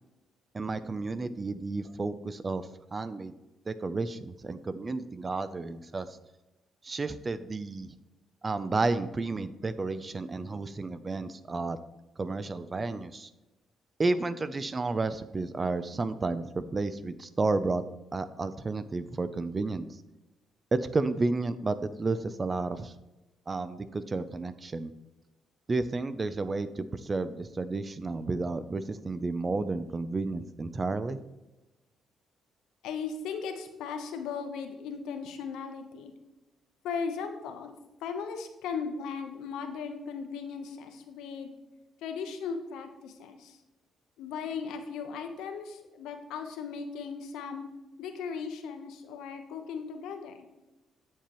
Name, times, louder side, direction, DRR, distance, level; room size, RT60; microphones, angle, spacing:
voice 1, 0.5-3.3 3.7-6.2 6.8-7.9 8.4-11.8 12.2-13.3 14.0-17.8 18.1-19.9 20.7-22.9 23.5-24.9 25.7-31.2, right 3 dB, 30° right, 13 dB, 0.5 m, -31 dB
voice 2, 32.8-36.1 36.8-37.7 38.0-41.5 42.0-43.6 44.2-47.6 48.0-50.5, left 6 dB, 90° left, 6 dB, 1.0 m, -37 dB
8.6 x 7.4 x 3.1 m, 1.0 s
cardioid pair, 90°, 0 cm